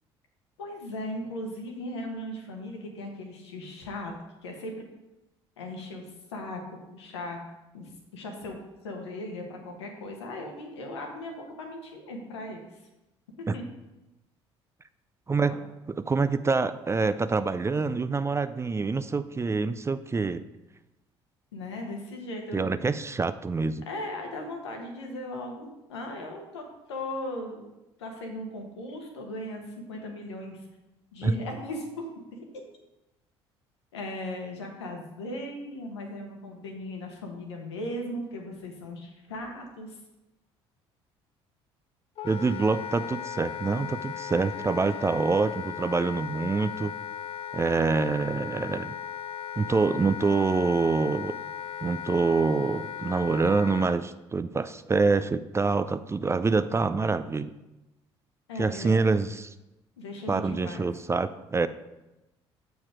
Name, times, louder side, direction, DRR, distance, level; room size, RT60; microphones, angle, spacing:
voice 1, 0.6-4.1 4.4-4.8 5.6-6.0 6.3-7.4 7.7-8.6 8.8-12.8 13.4-13.6 15.4-15.6 21.5-22.9 23.9-27.7 28.0-30.7 31.1-32.1 32.5-32.6 33.9-40.0 58.5-59.0 60.0-60.9, left 1 dB, 85° left, 2 dB, 1.2 m, -38 dB
voice 2, 15.9-20.4 22.5-23.9 31.2-31.4 42.2-46.9 47.5-48.9 49.6-51.3 51.8-57.5 58.6-59.5 60.3-61.7, right 4 dB, 20° right, 12 dB, 0.4 m, -26 dB
Wind instrument woodwind instrument, 42.2-54.0, left 9 dB, 45° left, 0.5 m, -37 dB
7.2 x 4.6 x 4.9 m, 0.97 s
hypercardioid pair, 55°, 14 cm